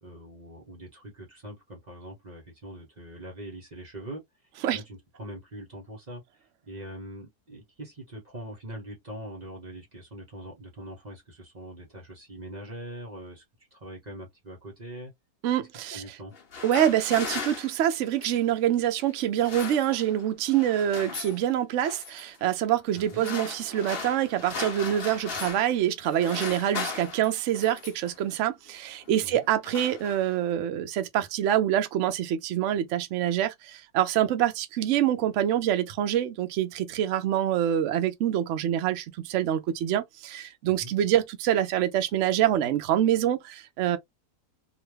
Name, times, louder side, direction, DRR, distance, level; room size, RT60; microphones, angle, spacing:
voice 1, 0.0-4.2 4.7-6.2 6.7-13.4 13.7-15.1 15.9-16.3 22.9-23.2 29.2-29.4 40.7-40.9, right 1 dB, 30° right, 0.9 m, -42 dB
voice 2, 15.4-16.0 16.6-44.0, right 11 dB, 65° right, 0.7 m, -26 dB
sound 1, 16.3-18.5 19.2-20.2 20.5-21.4 21.8-22.2 22.9-25.8 26.0-28.1 28.9-29.1 29.4-30.5, left 5 dB, 45° left, 0.9 m, -37 dB
3.0 x 2.1 x 3.2 m
omnidirectional pair, 1.8 m